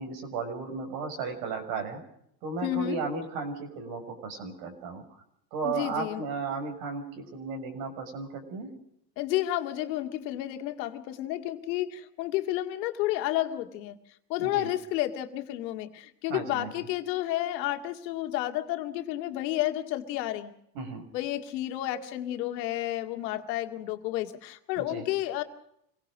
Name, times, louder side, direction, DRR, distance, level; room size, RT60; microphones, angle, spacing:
voice 1, 0.0-2.0 2.4-5.0 5.5-8.7 14.4-14.7 16.3-16.9 20.7-21.0 24.8-25.0, right 4 dB, 75° right, 4 dB, 6.5 m, -35 dB
voice 2, 2.6-3.0 5.6-6.2 9.2-14.0 14.3-20.5 21.1-25.4, left 14 dB, 85° left, 6 dB, 2.2 m, -31 dB
25.5 x 17.5 x 6.2 m, 0.73 s
supercardioid pair, 110°, 49 cm